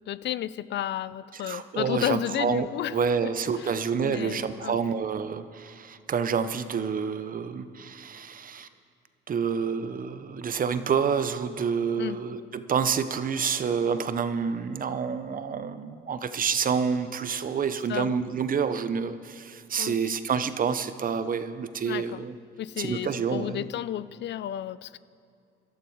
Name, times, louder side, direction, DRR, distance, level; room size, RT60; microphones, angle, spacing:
voice 1, 0.1-3.0 3.2-3.3 3.6-3.7 4.0-5.0 12.0-12.2 17.9-18.1 19.8-20.0 21.8-22.2 22.6-25.0, left 12 dB, 65° left, 17 dB, 0.4 m, -32 dB
voice 2, 1.3-8.7 9.3-22.4 22.8-23.6, right 6 dB, 45° right, 12 dB, 0.7 m, -28 dB
17.0 x 12.5 x 4.7 m, 2.4 s
cardioid pair, 90°, 20 cm